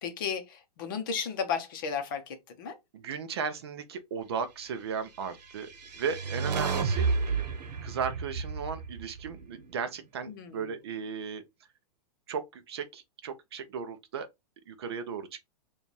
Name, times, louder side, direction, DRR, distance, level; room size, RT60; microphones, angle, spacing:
voice 1, 0.0-2.8 10.3-10.7, left 6 dB, 30° left, 0.7 m, -34 dB
voice 2, 2.9-5.7 6.0-7.1 7.8-11.4 12.3-14.3 14.7-15.5, right 6 dB, 40° right, 0.5 m, -36 dB
sound 1, 5.4-9.8, right 5 dB, 85° right, 0.9 m, -31 dB
4.8 x 2.3 x 3.2 m
hypercardioid pair, 175°, 21 cm